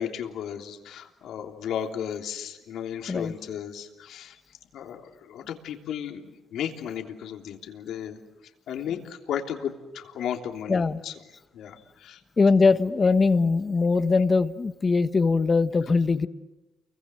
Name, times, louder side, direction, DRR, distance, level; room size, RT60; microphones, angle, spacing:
voice 1, 0.0-4.4 4.7-8.2 8.7-11.1 11.5-12.2, left 9 dB, 80° left, 4 dB, 3.2 m, -34 dB
voice 2, 10.7-11.0 12.4-16.3, left 4 dB, 35° left, 11 dB, 1.4 m, -21 dB
29.5 x 23.5 x 7.9 m, 1.0 s
cardioid pair, 90°, 0 cm